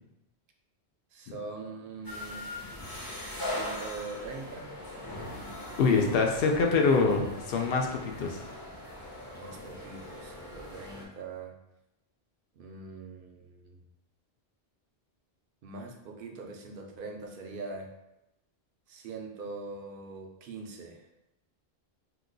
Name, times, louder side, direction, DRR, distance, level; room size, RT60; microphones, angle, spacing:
voice 1, 1.1-2.5 3.4-4.7 9.4-11.5 12.6-13.8 15.6-17.9 18.9-21.1, right 3 dB, 65° right, 2 dB, 0.7 m, -42 dB
sound 1, 2.0-11.0, left 1 dB, 25° left, 0.7 m, -40 dB
voice 2, 5.8-8.4, left 4 dB, 65° left, 2 dB, 0.8 m, -25 dB
2.9 x 2.2 x 3.8 m, 0.90 s
omnidirectional pair, 1.1 m